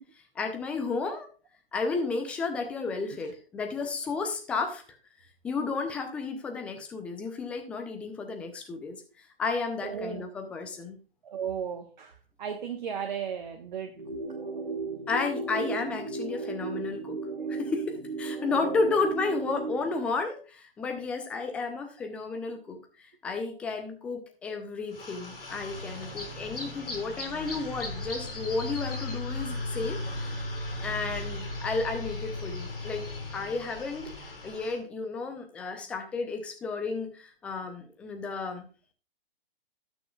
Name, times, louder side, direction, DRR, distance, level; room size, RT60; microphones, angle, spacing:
voice 1, 0.4-1.3 1.7-4.8 5.4-9.0 9.4-11.0 15.1-17.2 17.5-30.0 30.8-33.1 33.3-34.1 34.4-38.7, left 4 dB, 5° left, 5 dB, 0.4 m, -32 dB
voice 2, 9.8-10.3 11.2-14.0 18.5-19.0 24.5-24.6 30.1-30.2, right 7 dB, 50° right, 4 dB, 1.1 m, -36 dB
sound 1, 13.9-19.9, right 3 dB, 75° right, 1.9 m, -35 dB
sound 2, 24.9-34.8, left 2 dB, 65° left, 3.6 m, -37 dB
17.5 x 6.3 x 2.3 m, 0.37 s
figure-of-eight pair, 120°, 29 cm